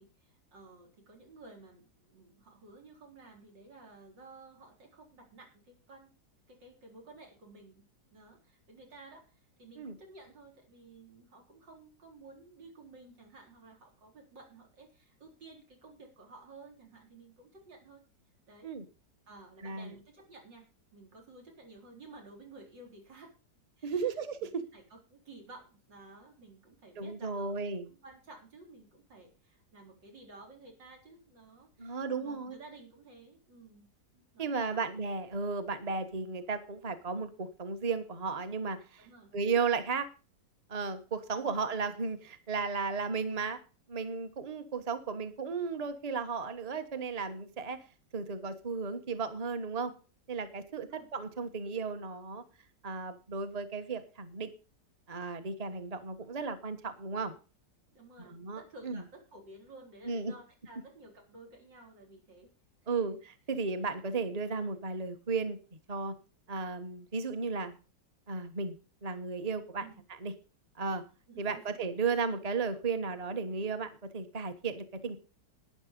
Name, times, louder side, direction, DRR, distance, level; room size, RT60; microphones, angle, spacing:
voice 1, 0.0-6.1 6.5-18.0 18.5-18.7 19.3-23.3 23.8-33.9 34.1-34.8 39.0-39.3 41.3-41.6 50.8-51.1 57.9-62.5 63.1-63.2 69.8-70.0 71.3-71.6, right 2 dB, 85° right, 1 dB, 4.8 m, -54 dB
voice 2, 19.6-19.9 23.8-24.6 27.0-27.9 31.8-32.6 34.4-39.1 39.3-40.1 40.7-43.6 43.9-47.8 48.1-49.9 50.3-52.4 52.8-54.5 55.1-57.3 58.2-59.0 60.0-60.3 62.9-63.2 63.5-65.6 65.9-66.2 66.5-67.8 68.3-69.9 70.2-70.3 70.8-71.0 71.4-75.2, right 4 dB, 25° right, 9 dB, 1.2 m, -34 dB
12.0 x 9.9 x 5.3 m, 0.34 s
omnidirectional pair, 1.9 m